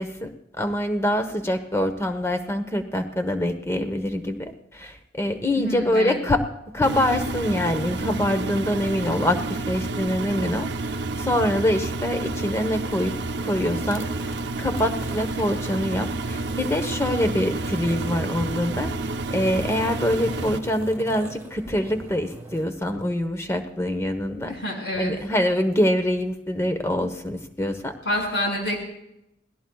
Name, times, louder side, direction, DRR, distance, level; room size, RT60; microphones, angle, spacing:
voice 1, 0.0-6.4 6.7-18.9 19.3-24.6 25.0-27.9, left 1 dB, 15° left, 7 dB, 1.1 m, -25 dB
voice 2, 5.5-6.2 24.5-25.2 28.0-28.9, equal, 70° left, 1 dB, 5.8 m, -27 dB
Engine, 6.8-20.6, right 2 dB, 65° right, 0.7 m, -30 dB
sound 1, 13.0-22.7, right 1 dB, 15° right, 1.8 m, -41 dB
29.0 x 18.5 x 2.4 m, 0.86 s
head